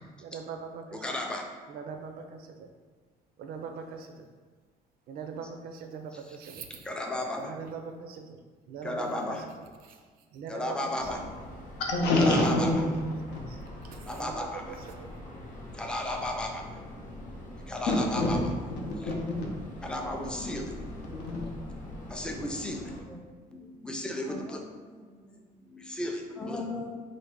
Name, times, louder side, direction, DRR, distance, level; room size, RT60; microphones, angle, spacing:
voice 1, 0.2-1.1 1.7-2.7 3.4-4.3 5.1-6.9 7.4-9.5 9.8-10.0 10.3-11.2 13.5-13.6 13.8-15.1 15.6-15.7, right 5 dB, 65° right, 5 dB, 0.4 m, -42 dB
voice 2, 1.0-1.4 6.9-7.5 8.8-9.4 10.5-11.2 12.3-12.7 14.1-14.6 15.8-16.5 17.7-18.4 19.8-20.6 22.1-22.8 23.1-23.2 23.8-24.6 26.0-26.9, left 1 dB, 5° left, 2 dB, 0.4 m, -33 dB
sound 1, 11.0-23.0, left 1 dB, 50° left, 0.7 m, -43 dB
voice 3, 11.8-12.8 13.3-13.4 17.9-18.5 18.8-19.6 20.5-20.6 21.1-21.5, left 2 dB, 90° left, 0 dB, 0.7 m, -26 dB
3.2 x 2.1 x 3.5 m, 1.5 s
cardioid pair, 110°, 17 cm